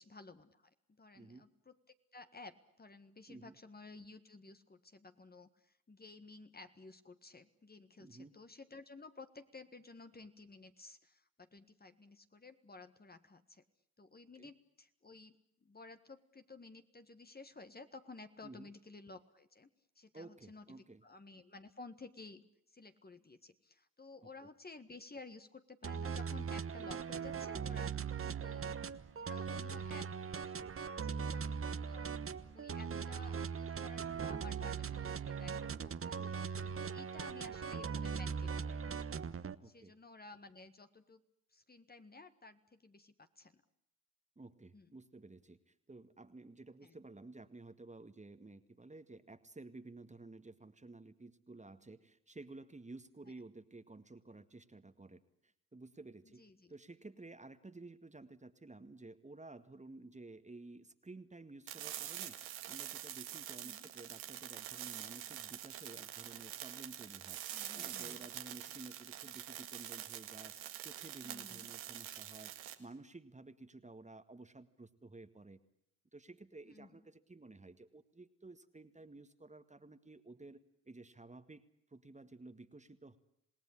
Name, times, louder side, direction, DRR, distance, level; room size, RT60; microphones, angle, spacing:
voice 1, 0.0-13.6 14.0-19.7 19.9-27.9 28.4-28.7 29.1-30.1 30.3-31.6 31.8-32.3 32.5-36.2 36.7-39.1 39.6-41.2 41.5-43.6 44.7-44.9 46.8-46.9 56.3-56.7 63.6-63.8 67.5-68.3 68.6-68.7 71.2-71.7 76.6-76.9, left 3 dB, 20° left, 9 dB, 1.7 m, -55 dB
voice 2, 1.1-1.4 3.3-3.6 8.0-8.3 14.3-14.5 18.4-18.7 20.1-21.0 24.4-24.5 36.2-36.3 39.6-39.9 44.3-56.4 56.7-62.4 62.7-67.4 67.7-70.5 70.8-72.5 72.8-75.6 76.1-80.6 80.9-81.6 81.9-83.2, right 2 dB, 15° right, 10 dB, 1.8 m, -53 dB
sound 1, 25.8-39.5, right 6 dB, 30° right, 1.2 m, -40 dB
sound 2, 61.7-72.7, right 12 dB, 85° right, 2.0 m, -46 dB
27.5 x 19.0 x 10.0 m, 0.72 s
hypercardioid pair, 55°, 41 cm